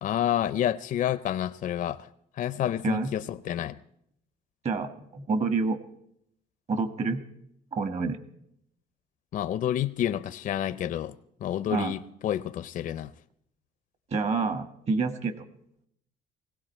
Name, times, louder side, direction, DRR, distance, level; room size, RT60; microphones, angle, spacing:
voice 1, 0.0-2.1 2.4-3.8 9.3-11.1 11.4-13.1, left 11 dB, 50° left, 0.5 m, -29 dB
voice 2, 4.6-5.8 6.7-7.2 7.7-8.2 11.7-11.9 14.1-15.3, right 4 dB, 40° right, 1.4 m, -28 dB
19.0 x 16.5 x 4.4 m
cardioid pair, 110°, 17 cm